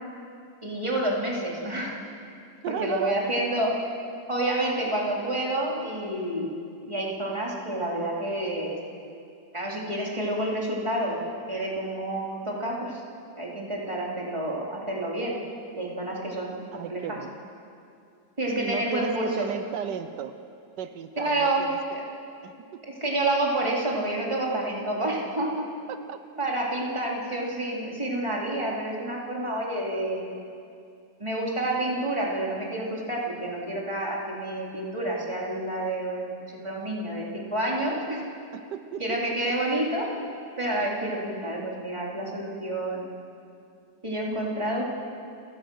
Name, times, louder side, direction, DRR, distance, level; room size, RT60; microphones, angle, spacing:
voice 1, 0.6-2.0 2.7-3.8 4.3-6.5 6.9-8.8 9.5-11.2 11.5-13.0 13.4-15.4 15.7-17.2 18.4-19.5 21.2-22.0 22.8-25.7 26.4-30.3 31.2-38.2 39.0-40.1 40.6-43.1 44.0-44.8, right 1 dB, 15° right, -3 dB, 3.6 m, -29 dB
voice 2, 2.6-3.3 16.7-17.3 18.6-20.3 20.8-21.8 22.4-22.8 25.9-26.2 38.5-39.3, right 8 dB, 85° right, 9 dB, 1.4 m, -35 dB
29.5 x 17.0 x 6.4 m, 2.5 s
omnidirectional pair, 1.8 m